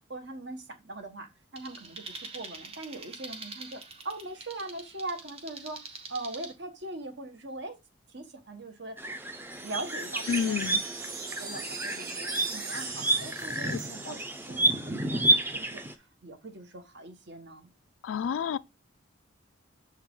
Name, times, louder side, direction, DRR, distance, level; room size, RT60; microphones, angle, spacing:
voice 1, 0.1-7.8 8.1-10.8 11.4-15.2 15.5-17.7, right 2 dB, 55° right, 1.3 m, -41 dB
sound 1, 1.6-6.5, right 4 dB, 30° right, 1.2 m, -45 dB
sound 2, 9.0-15.9, right 1 dB, 10° right, 0.6 m, -30 dB
sound 3, 9.5-14.9, right 4 dB, 85° right, 2.5 m, -40 dB
voice 2, 10.3-10.8 14.0-14.1 18.0-18.6, left 7 dB, 75° left, 0.3 m, -29 dB
7.0 x 4.5 x 3.8 m
head